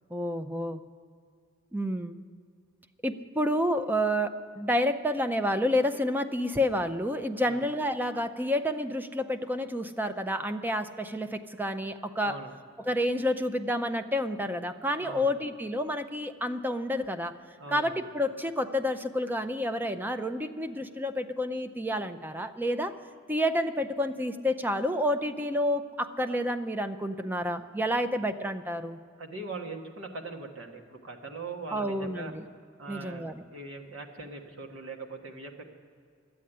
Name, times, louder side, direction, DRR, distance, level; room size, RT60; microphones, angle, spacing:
voice 1, 0.1-0.8 1.7-2.2 3.0-12.4 12.8-17.3 17.7-22.9 23.3-29.0 31.7-32.5 32.9-33.4, equal, 10° right, 9 dB, 0.5 m, -29 dB
voice 2, 12.2-12.5 15.0-15.3 17.6-18.0 29.2-32.3 32.8-35.7, right 3 dB, 70° right, 2 dB, 1.4 m, -41 dB
12.5 x 8.5 x 9.9 m, 2.2 s
head